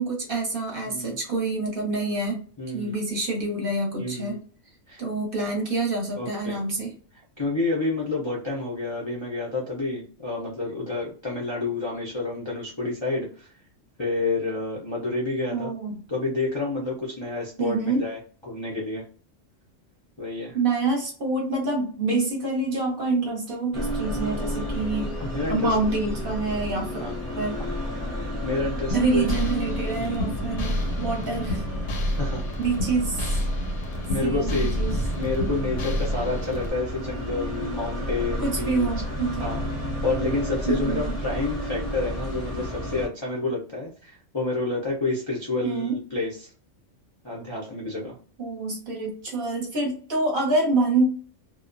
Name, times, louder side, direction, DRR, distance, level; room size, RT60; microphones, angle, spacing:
voice 1, 0.0-2.4 2.7-4.4 5.0-6.9 15.5-16.0 17.6-18.0 20.5-25.2 25.5-27.0 27.4-27.6 28.9-31.6 32.6-33.4 34.2-35.0 38.4-39.6 40.7-41.2 45.6-46.0 48.4-51.1, right 3 dB, 50° right, 0 dB, 0.8 m, -26 dB
voice 2, 0.9-1.2 2.6-2.9 4.0-4.4 4.9-5.0 6.2-6.6 7.4-13.5 14.0-15.7 16.1-19.0 20.2-20.6 25.3-25.8 27.0-27.2 28.4-29.3 30.0-30.2 31.2-31.4 32.2-32.4 34.1-34.7 35.1-38.9 39.4-39.7 40.0-46.5 47.2-48.2, left 3 dB, 35° left, -5 dB, 0.4 m, -29 dB
sound 1, 23.7-43.1, equal, 15° right, 0.7 m, -32 dB
sound 2, 28.9-36.7, equal, 85° left, 1.1 m, -29 dB
2.3 x 2.1 x 2.4 m, 0.42 s
omnidirectional pair, 1.3 m